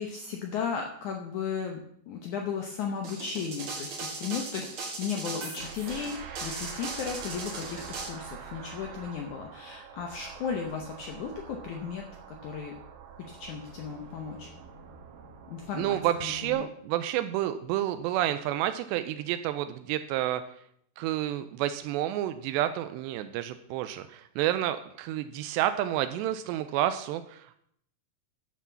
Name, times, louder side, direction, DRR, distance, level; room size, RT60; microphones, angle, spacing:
voice 1, 0.0-12.7 13.2-14.5 15.5-16.7, left 6 dB, 85° left, 2 dB, 1.7 m, -35 dB
sound 1, 3.0-8.1, right 4 dB, 45° right, 1.8 m, -38 dB
sound 2, 5.6-16.5, right 7 dB, 65° right, 2.5 m, -45 dB
voice 2, 15.8-20.4 21.0-27.6, right 12 dB, 90° right, 10 dB, 2.8 m, -30 dB
11.0 x 6.1 x 7.0 m, 0.69 s
omnidirectional pair, 4.9 m